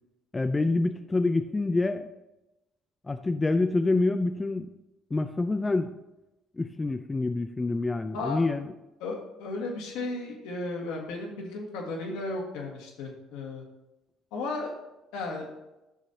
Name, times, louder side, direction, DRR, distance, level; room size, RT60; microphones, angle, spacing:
voice 1, 0.3-2.1 3.1-4.7 5.1-6.0 6.6-8.7, left 2 dB, 20° left, 8 dB, 0.5 m, -27 dB
voice 2, 8.1-8.4 9.0-13.6 14.3-14.7 15.1-15.5, left 2 dB, 70° left, 1 dB, 1.6 m, -34 dB
11.5 x 6.3 x 2.8 m, 0.97 s
hypercardioid pair, 55°, 0 cm